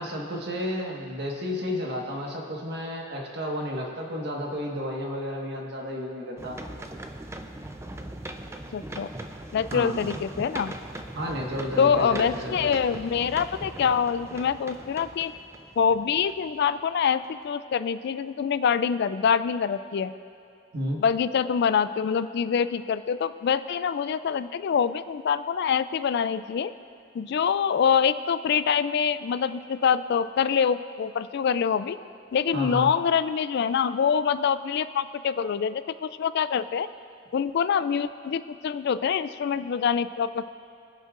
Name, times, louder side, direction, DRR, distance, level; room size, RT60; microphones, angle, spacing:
voice 1, 0.0-6.6 9.7-10.1 11.1-12.7 20.7-21.0 32.5-32.9, equal, 55° right, -1 dB, 1.6 m, -32 dB
sound 1, 6.4-16.7 17.2-17.3, right 1 dB, 15° right, 0.5 m, -40 dB
voice 2, 8.7-9.1 9.5-10.7 11.8-15.3 15.8-20.1 21.0-26.7 27.1-32.0 32.3-36.9 37.3-40.5, left 7 dB, 55° left, 13 dB, 0.3 m, -25 dB
24.0 x 8.1 x 2.5 m, 2.5 s
head